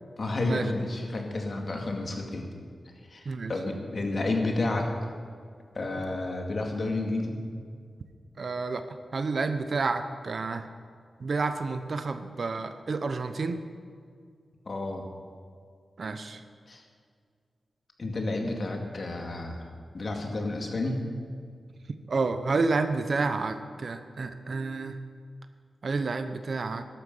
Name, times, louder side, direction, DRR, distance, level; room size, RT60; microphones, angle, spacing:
voice 1, 0.2-2.5 3.1-4.9 5.7-7.4 14.7-15.1 16.7-16.8 18.0-19.7 19.9-21.0, left 2 dB, 55° left, 2 dB, 2.2 m, -31 dB
voice 2, 8.4-8.8 9.1-10.7 11.2-13.6 16.0-16.4 22.1-25.0 25.8-26.8, right 4 dB, 60° right, 9 dB, 0.9 m, -29 dB
13.5 x 11.5 x 5.6 m, 2.1 s
cardioid pair, 75°, 0 cm